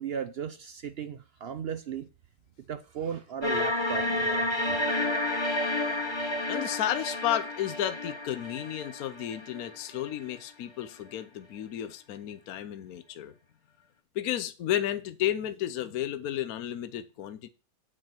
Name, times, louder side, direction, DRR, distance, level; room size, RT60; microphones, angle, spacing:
voice 1, 0.0-2.1 2.7-4.8, right 7 dB, 70° right, 0.5 m, -36 dB
sound 1, 3.4-10.4, left 1 dB, 20° left, 0.9 m, -30 dB
voice 2, 6.5-13.3 14.1-17.5, left 11 dB, 65° left, 1.1 m, -32 dB
8.5 x 4.6 x 7.4 m
omnidirectional pair, 1.8 m